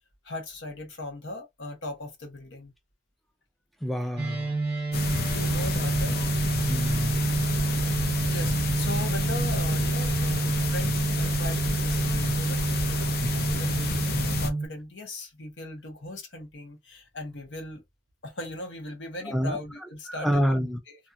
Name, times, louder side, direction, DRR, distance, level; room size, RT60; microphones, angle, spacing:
voice 1, 0.2-2.7 5.2-6.2 8.3-17.8 18.2-20.6 20.9-21.0, left 1 dB, 80° left, 1.0 m, -39 dB
voice 2, 3.8-4.5 6.7-7.2 19.3-19.6 20.1-20.8, equal, ahead, 0.3 m, -27 dB
sound 1, 4.2-14.7, right 3 dB, 30° right, 1.0 m, -28 dB
sound 2, 4.9-14.5, left 3 dB, 55° left, 0.5 m, -30 dB
2.6 x 2.3 x 2.6 m
head